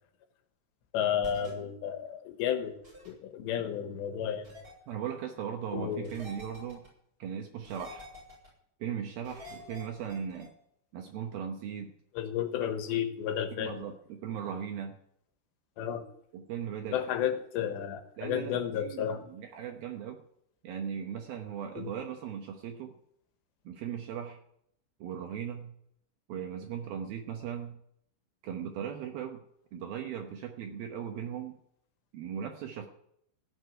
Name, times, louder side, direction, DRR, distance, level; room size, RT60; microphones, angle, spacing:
voice 1, 0.9-2.8 3.1-4.5 5.7-6.1 12.2-13.9 15.8-16.0 16.9-19.2 21.8-21.9, left 9 dB, 75° left, 7 dB, 3.2 m, -32 dB
sound 1, 1.2-1.5 2.8-3.1 4.4-4.7 6.0-6.9 7.6-8.5 9.2-10.5, left 1 dB, 20° right, 7.4 m, -48 dB
voice 2, 4.9-6.9 7.2-8.1 8.8-10.5 10.9-11.9 12.6-12.7 13.5-15.0 16.3-17.3 18.2-20.2 20.6-22.9 23.7-24.4 25.0-25.7 26.3-27.8 28.4-29.4 29.7-31.6 32.1-32.9, right 8 dB, 70° right, 4 dB, 2.4 m, -38 dB
16.5 x 6.7 x 9.1 m, 0.72 s
omnidirectional pair, 5.4 m